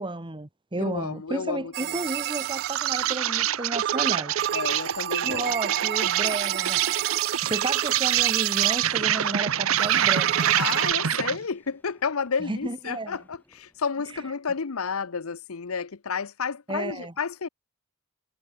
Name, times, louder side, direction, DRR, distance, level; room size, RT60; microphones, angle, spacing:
voice 1, 0.0-4.4 5.2-6.8 7.1-10.5 12.4-13.2 16.7-17.1, right 2 dB, 25° right, 1.5 m, -32 dB
voice 2, 0.8-2.1 4.5-5.5 10.5-17.5, left 5 dB, 75° left, 0.8 m, -31 dB
sound 1, 1.7-3.5 3.8-9.3 9.8-10.9, right 12 dB, 50° right, 0.3 m, -31 dB
Insect, 2.1-11.4, right 11 dB, 70° right, 0.9 m, -26 dB
sound 2, 8.4-14.4, left 1 dB, 10° left, 8.0 m, -61 dB
head